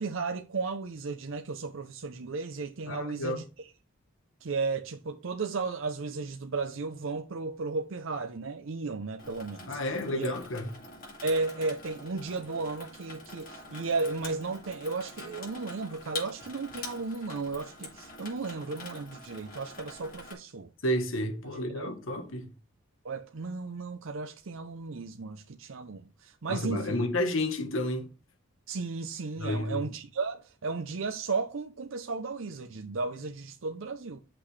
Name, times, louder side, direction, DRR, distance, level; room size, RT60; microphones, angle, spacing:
voice 1, 0.0-3.4 4.4-9.8 10.1-10.3 11.2-20.7 21.7-21.9 23.0-27.1 28.7-34.2, right 4 dB, 70° right, 0.6 m, -34 dB
voice 2, 2.9-3.4 9.7-10.7 20.8-22.5 26.5-28.1 29.4-29.8, left 1 dB, 70° left, 1.3 m, -31 dB
Water tap faucet / Sink (filling or washing), 9.2-20.3, left 3 dB, 40° left, 2.4 m, -45 dB
9.9 x 5.9 x 3.3 m
head